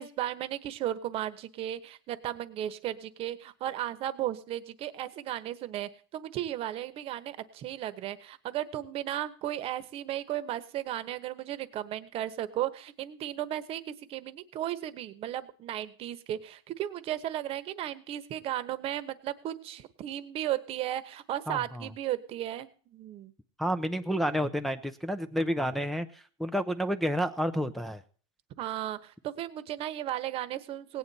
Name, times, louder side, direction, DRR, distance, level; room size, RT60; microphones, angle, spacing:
voice 1, 0.0-23.3 28.6-31.0, right 12 dB, 40° right, 14 dB, 1.1 m, -35 dB
voice 2, 21.5-21.9 23.6-28.0, equal, ahead, 6 dB, 0.6 m, -30 dB
18.0 x 9.3 x 4.2 m, 0.42 s
supercardioid pair, 135°, 15 cm